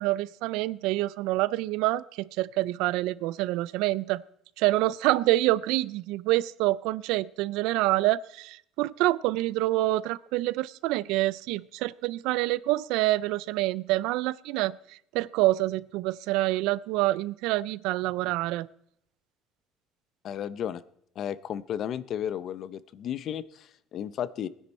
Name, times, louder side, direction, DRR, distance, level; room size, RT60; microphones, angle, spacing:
voice 1, 0.0-4.2 4.6-18.7, right 17 dB, 80° right, 20 dB, 0.4 m, -27 dB
voice 2, 20.2-20.8 21.2-24.5, left 9 dB, 45° left, 17 dB, 0.6 m, -33 dB
20.0 x 10.0 x 4.3 m, 0.70 s
cardioid pair, 150°, 0 cm